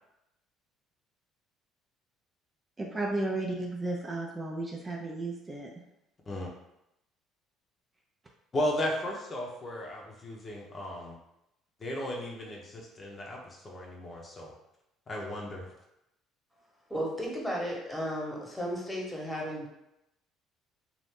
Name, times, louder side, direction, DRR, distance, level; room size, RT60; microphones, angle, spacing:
voice 1, 2.8-5.7, right 2 dB, 25° right, -1 dB, 0.6 m, -33 dB
voice 2, 8.5-11.2 11.8-14.5 15.1-15.7, left 1 dB, 35° left, -2 dB, 0.8 m, -35 dB
voice 3, 16.9-19.7, equal, 5° left, -3 dB, 1.2 m, -34 dB
2.8 x 2.5 x 3.6 m, 0.86 s
supercardioid pair, 70°, 0 cm